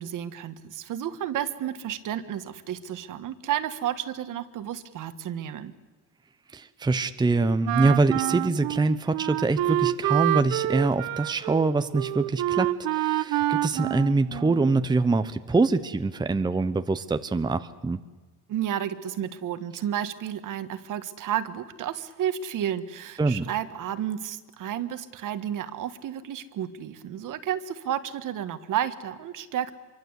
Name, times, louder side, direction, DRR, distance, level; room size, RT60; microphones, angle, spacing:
voice 1, 0.0-5.7 18.5-29.7, right 10 dB, 60° right, 11 dB, 1.6 m, -31 dB
voice 2, 6.5-18.0 23.2-23.5, right 3 dB, 10° right, 10 dB, 0.8 m, -24 dB
Wind instrument woodwind instrument, 7.6-14.9, right 15 dB, 75° right, 1.0 m, -27 dB
25.5 x 23.5 x 8.3 m, 1.3 s
cardioid pair, 115°, 35 cm